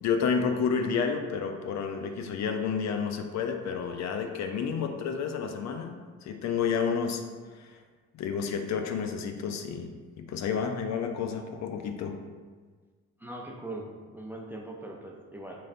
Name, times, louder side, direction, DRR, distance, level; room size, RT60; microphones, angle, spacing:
voice 1, 0.0-7.2 7.5-7.8 8.1-9.9 10.2-12.2, left 6 dB, 65° left, 5 dB, 0.4 m, -30 dB
voice 2, 13.2-15.7, right 1 dB, 5° right, 0 dB, 0.4 m, -41 dB
3.8 x 3.1 x 2.5 m, 1.5 s
cardioid pair, 90°, 30 cm